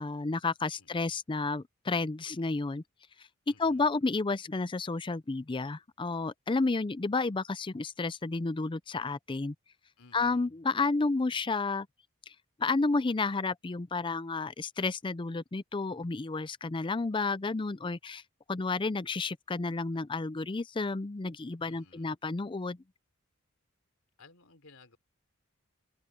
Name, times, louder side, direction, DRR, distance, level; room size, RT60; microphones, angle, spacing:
voice 1, 0.0-2.8 3.5-9.5 10.1-11.9 12.6-18.2 18.5-22.8, left 3 dB, 25° left, 0.5 m, -31 dB
voice 2, 0.8-1.1 3.5-3.9 10.0-10.5 21.6-22.1 24.2-25.0, left 3 dB, 75° left, 3.4 m, -58 dB
open air
head